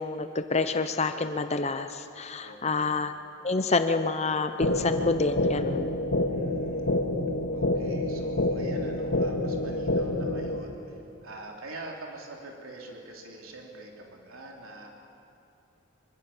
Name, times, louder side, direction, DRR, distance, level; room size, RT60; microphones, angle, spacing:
voice 1, 0.0-3.1 3.4-5.9, left 3 dB, 30° left, 9 dB, 0.7 m, -28 dB
voice 2, 2.4-3.0 6.2-7.0 7.5-14.9, right 2 dB, 90° right, 0 dB, 3.2 m, -44 dB
sound 1, 4.6-10.6, left 1 dB, 60° left, 1.9 m, -28 dB
25.0 x 24.0 x 7.3 m, 2.7 s
head